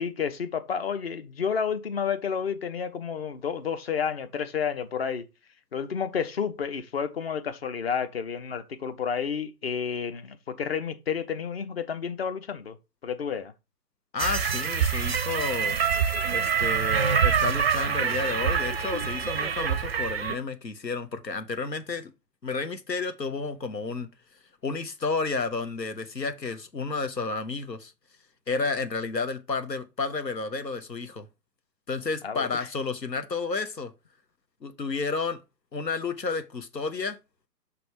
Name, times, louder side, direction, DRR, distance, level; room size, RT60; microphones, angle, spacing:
voice 1, 0.0-5.3 5.7-12.8 13.0-13.5 32.2-32.5, left 7 dB, 40° left, 0.7 m, -30 dB
voice 2, 14.1-15.8 16.3-22.1 22.4-24.1 24.6-27.9 28.5-31.3 31.9-33.9 34.6-35.4 35.7-37.2, left 4 dB, 85° left, 1.0 m, -31 dB
sound 1, 14.2-20.3, right 7 dB, 40° right, 0.5 m, -26 dB
5.9 x 3.4 x 5.1 m
figure-of-eight pair, 125°, 49 cm